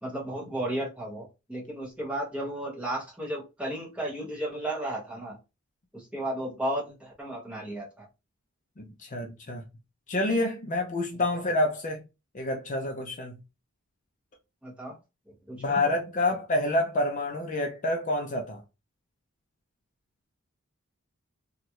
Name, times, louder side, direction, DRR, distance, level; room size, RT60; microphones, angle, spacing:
voice 1, 0.0-5.4 5.9-8.1 14.6-15.0 15.5-15.8, right 1 dB, 5° right, 1.1 m, -34 dB
voice 2, 8.8-9.6 10.1-12.0 12.3-13.4 15.6-18.6, left 2 dB, 35° left, 0.5 m, -28 dB
3.0 x 2.4 x 2.9 m
head